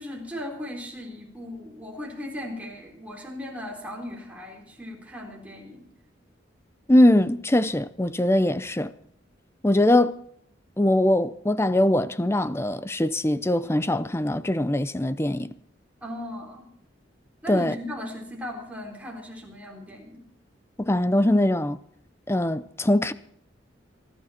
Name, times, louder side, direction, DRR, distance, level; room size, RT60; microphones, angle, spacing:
voice 1, 0.0-5.9 16.0-16.7 17.4-20.3, left 1 dB, 10° right, 4.0 m, -37 dB
voice 2, 6.9-8.9 9.6-10.2 10.8-15.5 17.5-17.7 20.8-21.8 22.3-23.1, left 1 dB, 15° left, 0.6 m, -22 dB
24.0 x 12.0 x 4.4 m
head